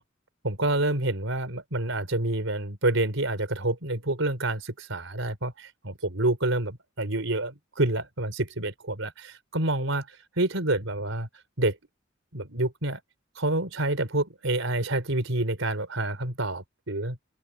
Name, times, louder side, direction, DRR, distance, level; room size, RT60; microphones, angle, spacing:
voice 1, 0.4-11.3 11.6-11.8 12.3-13.0 13.4-17.2, right 2 dB, 85° right, 4.2 m, -28 dB
head